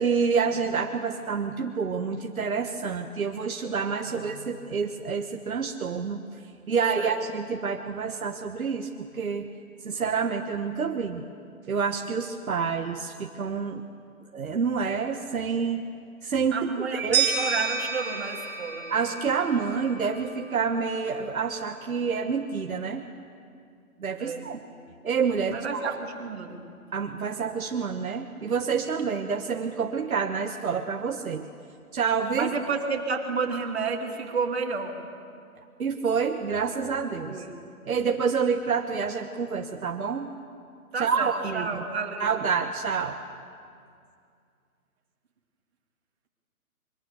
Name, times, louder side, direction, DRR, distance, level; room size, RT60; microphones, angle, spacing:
voice 1, 0.0-6.2 6.7-9.5 9.8-11.2 11.7-13.8 14.3-15.9 16.2-17.3 18.9-23.1 24.0-24.6 25.0-25.8 26.9-31.5 31.9-32.5 35.8-37.4 37.9-40.3 41.0-41.8 42.2-43.2, right 5 dB, 70° right, 4 dB, 1.5 m, -28 dB
voice 2, 16.5-18.9 24.2-24.5 25.5-26.6 32.3-35.0 37.3-37.5 40.9-42.3, right 5 dB, 45° right, 3 dB, 2.6 m, -31 dB
sound 1, 17.1-20.0, right 6 dB, 5° right, 2.1 m, -29 dB
24.0 x 23.0 x 7.0 m, 2.3 s
hypercardioid pair, 170°, 44 cm